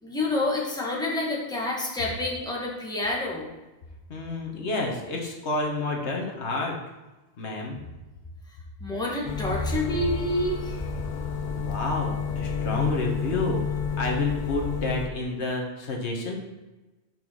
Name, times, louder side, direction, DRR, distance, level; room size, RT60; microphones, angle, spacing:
voice 1, 0.0-3.5 8.5-10.9, left 2 dB, 5° left, -4 dB, 1.3 m, -28 dB
voice 2, 4.1-6.8 7.4-7.8 11.5-13.7 14.0-16.3, left 2 dB, 75° left, 0 dB, 1.4 m, -29 dB
sound 1, 9.2-15.1, left 6 dB, 50° left, 0.7 m, -30 dB
5.4 x 4.6 x 6.2 m, 1.1 s
omnidirectional pair, 1.2 m